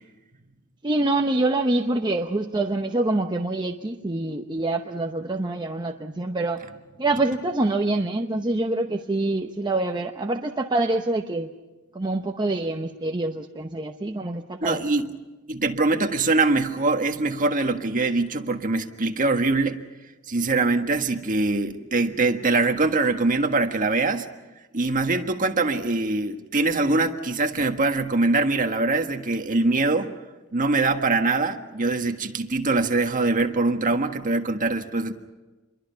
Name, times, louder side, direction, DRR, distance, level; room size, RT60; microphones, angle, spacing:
voice 1, 0.8-6.6 7.0-11.5 11.9-14.8, right 2 dB, 20° right, 3 dB, 0.9 m, -25 dB
voice 2, 14.6-15.1 15.5-19.8 20.3-24.3 24.7-30.1 30.5-35.1, right 3 dB, 40° right, 5 dB, 1.5 m, -23 dB
27.5 x 23.0 x 5.7 m, 1.2 s
head